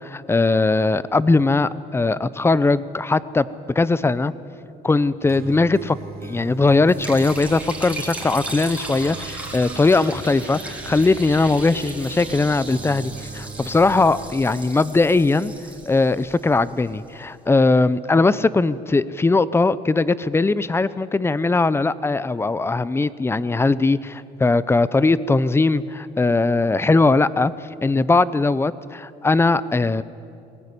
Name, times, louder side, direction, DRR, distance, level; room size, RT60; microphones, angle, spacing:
voice 1, 0.0-4.3 4.8-6.0 6.2-15.5 15.9-27.5 27.8-30.0, left 3 dB, 15° left, 17 dB, 0.7 m, -19 dB
sound 1, 5.2-14.3, right 5 dB, 65° right, 3.0 m, -40 dB
Liquid, 6.9-17.1, right 2 dB, 10° right, 4.4 m, -36 dB
21.5 x 19.5 x 9.9 m, 2.6 s
cardioid pair, 110°, 17 cm